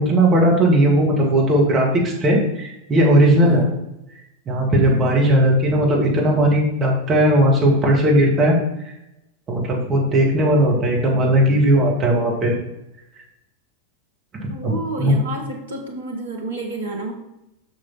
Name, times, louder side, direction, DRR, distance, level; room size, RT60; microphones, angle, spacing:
voice 1, 0.0-3.7 4.5-8.6 9.5-12.5 14.6-15.1, right 1 dB, 25° right, -2 dB, 2.5 m, -17 dB
voice 2, 3.4-3.7 4.8-5.2 14.5-17.1, right 2 dB, 70° right, 1 dB, 1.7 m, -30 dB
6.6 x 6.1 x 4.3 m, 0.88 s
figure-of-eight pair, 90°, 0 cm